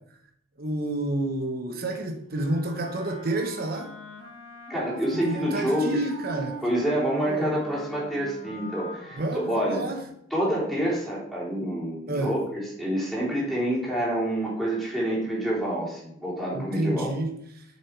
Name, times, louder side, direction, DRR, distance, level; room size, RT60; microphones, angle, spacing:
voice 1, 0.6-3.9 5.1-6.6 7.2-7.5 9.2-10.0 12.1-12.3 16.5-17.6, right 2 dB, 50° right, 4 dB, 1.0 m, -29 dB
Wind instrument woodwind instrument, 2.3-10.1, equal, 30° left, 3.6 m, -41 dB
voice 2, 4.7-5.9 6.6-9.8 10.3-17.1, right 1 dB, ahead, -8 dB, 3.4 m, -27 dB
7.4 x 6.1 x 4.7 m, 0.72 s
head